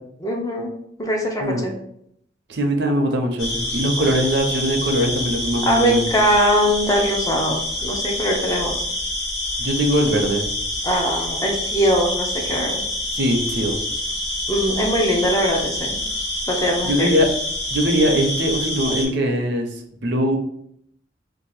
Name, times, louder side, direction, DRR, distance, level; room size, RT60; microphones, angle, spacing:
voice 1, 0.2-0.7 1.0-1.8 5.6-8.9 10.8-12.8 14.5-16.0 16.5-17.1, equal, 20° left, 0 dB, 0.5 m, -21 dB
voice 2, 2.5-6.0 9.6-10.5 13.1-13.8 16.8-17.3 17.7-19.7 20.0-20.4, equal, 65° right, 3 dB, 0.6 m, -21 dB
sound 1, 3.4-19.0, left 1 dB, 75° left, 1.4 m, -27 dB
2.7 x 2.5 x 4.0 m, 0.72 s
head